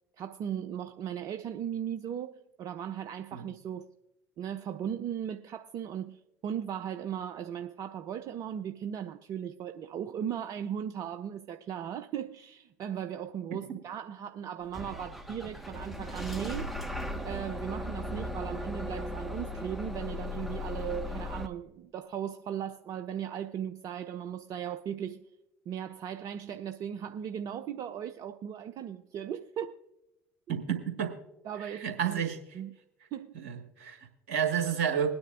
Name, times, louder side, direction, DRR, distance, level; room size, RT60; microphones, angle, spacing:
voice 1, 0.2-3.9 4.4-16.7 17.2-25.3 25.7-29.7 31.4-32.2 32.5-32.7 33.1-33.4, right 9 dB, 50° right, 0.6 m, -37 dB
Bus / Engine starting, 14.7-21.5, left 1 dB, ahead, 1.4 m, -37 dB
voice 2, 30.5-31.1 31.6-32.6 33.3-35.1, right 8 dB, 75° right, 1.6 m, -31 dB
21.5 x 9.7 x 2.5 m
hypercardioid pair, 60°, 8 cm